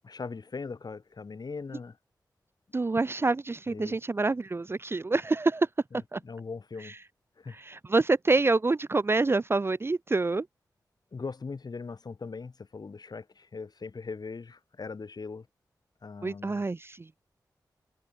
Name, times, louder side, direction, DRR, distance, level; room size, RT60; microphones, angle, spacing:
voice 1, 0.0-2.0 3.7-4.0 5.9-6.9 7.4-7.6 11.1-15.5 16.0-16.6, left 4 dB, 60° left, 6.2 m, -40 dB
voice 2, 2.7-5.7 6.1-6.2 7.6-10.5 16.2-17.0, right 3 dB, 30° right, 0.4 m, -26 dB
cardioid pair, 45°, 8 cm